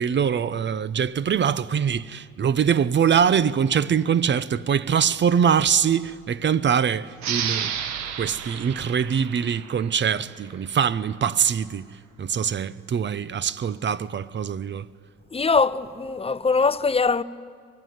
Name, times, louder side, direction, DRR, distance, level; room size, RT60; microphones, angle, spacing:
voice 1, 0.0-7.7 8.2-11.9 12.2-14.9, right 7 dB, 40° right, 0.8 m, -23 dB
sound 1, 7.2-10.4, right 8 dB, 70° right, 1.7 m, -32 dB
voice 2, 15.3-17.2, left 4 dB, 20° left, 0.7 m, -22 dB
24.0 x 20.5 x 9.4 m
supercardioid pair, 70°, 29 cm